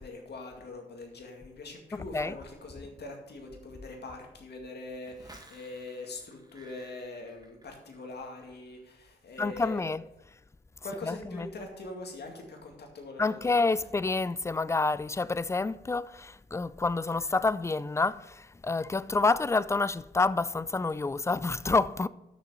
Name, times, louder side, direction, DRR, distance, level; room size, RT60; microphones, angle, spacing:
voice 1, 0.0-9.8 10.8-13.6, left 2 dB, 70° left, 2.2 m, -43 dB
sound 1, 5.0-8.1 8.4-8.8, right 1 dB, 20° right, 1.8 m, -54 dB
voice 2, 9.4-10.0 11.0-11.5 13.2-22.1, left 3 dB, 15° left, 0.4 m, -28 dB
6.7 x 6.3 x 7.5 m
cardioid pair, 55°, 18 cm